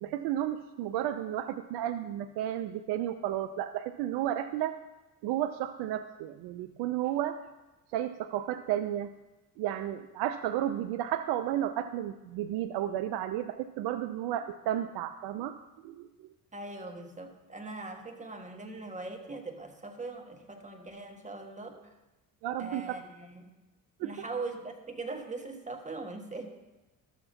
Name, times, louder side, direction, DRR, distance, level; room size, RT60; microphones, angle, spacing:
voice 1, 0.0-4.8 5.2-7.4 7.9-9.1 9.6-15.6 15.8-16.3 22.4-23.0 24.0-24.1, right 12 dB, 60° right, 10 dB, 0.5 m, -32 dB
voice 2, 16.5-21.9 22.6-23.4 24.0-26.4, right 3 dB, 15° right, 3 dB, 1.5 m, -41 dB
13.0 x 7.1 x 2.7 m, 1.1 s
hypercardioid pair, 55°, 46 cm